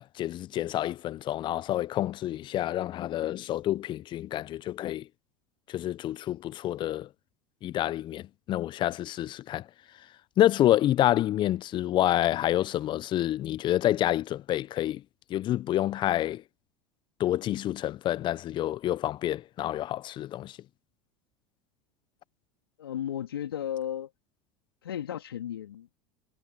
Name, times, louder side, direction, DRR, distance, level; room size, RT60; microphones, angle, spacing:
voice 1, 0.0-5.1 5.7-7.1 7.6-9.7 10.4-15.0 15.3-16.4 17.2-20.6, left 13 dB, 40° left, 1.0 m, -28 dB
voice 2, 22.8-24.1 24.8-25.9, left 10 dB, 75° left, 2.6 m, -34 dB
hypercardioid pair, 80°, 12 cm